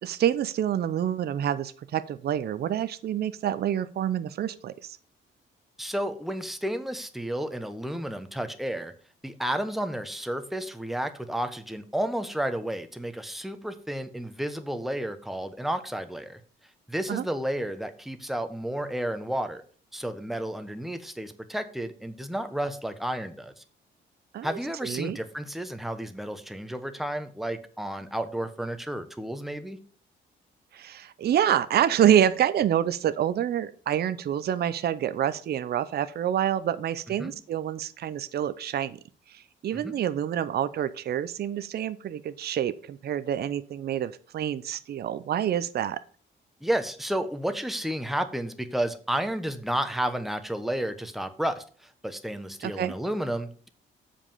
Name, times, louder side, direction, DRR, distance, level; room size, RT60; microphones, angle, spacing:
voice 1, 0.0-5.0 17.1-17.2 24.3-25.2 30.7-39.0 39.6-46.0 52.6-52.9, right 10 dB, 55° right, 14 dB, 0.6 m, -27 dB
voice 2, 5.8-8.9 9.2-16.4 16.9-19.6 19.9-23.6 24.4-29.8 37.2-37.3 39.7-39.9 46.6-53.7, right 1 dB, ahead, 8 dB, 1.0 m, -31 dB
7.2 x 5.1 x 5.5 m, 0.42 s
cardioid pair, 90°, 20 cm